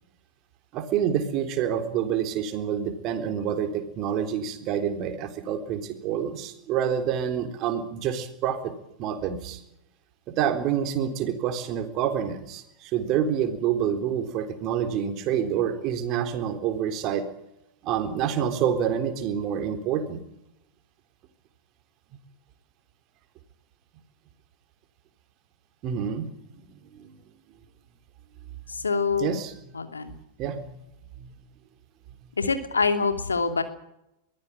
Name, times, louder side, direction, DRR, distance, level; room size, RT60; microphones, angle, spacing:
voice 1, 0.7-8.7 9.0-9.6 10.4-17.3 17.8-20.2 25.8-27.1 29.2-29.5 30.4-30.8 31.2-31.4, right 8 dB, 40° right, 8 dB, 3.8 m, -27 dB
voice 2, 28.7-29.4 29.7-30.1 32.4-33.6, left 4 dB, 80° left, 8 dB, 2.7 m, -25 dB
22.5 x 15.0 x 8.9 m, 0.83 s
figure-of-eight pair, 95°, 0 cm